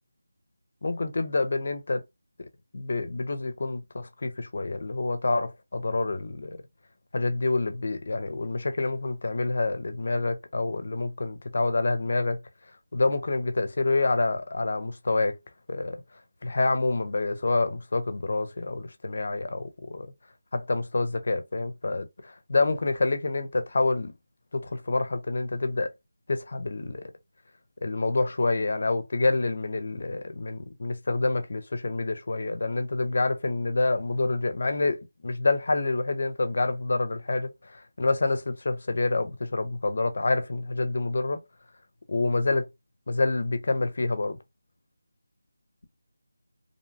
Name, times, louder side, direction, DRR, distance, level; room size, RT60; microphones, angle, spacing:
voice 1, 0.8-2.0 2.4-2.5 2.7-6.6 7.1-12.4 12.9-15.4 15.7-16.0 16.4-20.1 20.5-24.1 24.5-25.9 26.3-27.1 27.8-41.4 42.1-42.7 43.1-44.4, left 3 dB, 45° left, 0.4 m, -27 dB
2.6 x 2.1 x 2.6 m
figure-of-eight pair, 175°, 0 cm